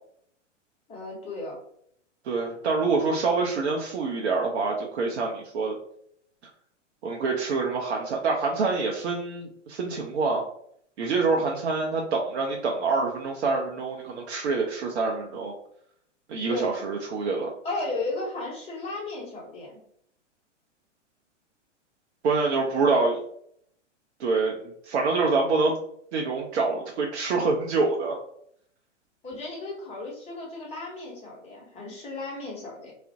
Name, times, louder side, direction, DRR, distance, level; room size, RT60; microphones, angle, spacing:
voice 1, 0.9-1.5 16.5-16.7 17.6-19.8 29.2-32.9, left 2 dB, 15° left, -3 dB, 0.9 m, -34 dB
voice 2, 2.2-5.8 7.0-10.4 11.0-15.5 16.3-17.5 22.2-23.2 24.2-24.6 24.8-25.7 26.1-28.2, right 4 dB, 60° right, 0 dB, 0.5 m, -26 dB
2.4 x 2.0 x 2.6 m, 0.68 s
hypercardioid pair, 115°, 37 cm